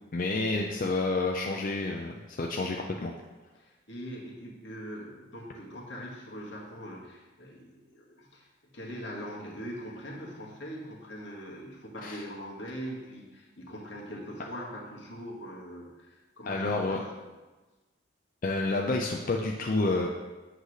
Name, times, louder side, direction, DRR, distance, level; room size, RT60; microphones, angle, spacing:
voice 1, 0.1-3.1 12.0-12.2 16.5-17.0 18.4-20.1, left 2 dB, 45° left, 0 dB, 0.5 m, -29 dB
voice 2, 3.6-17.0, equal, 70° left, -2 dB, 1.5 m, -42 dB
7.9 x 3.2 x 6.2 m, 1.2 s
head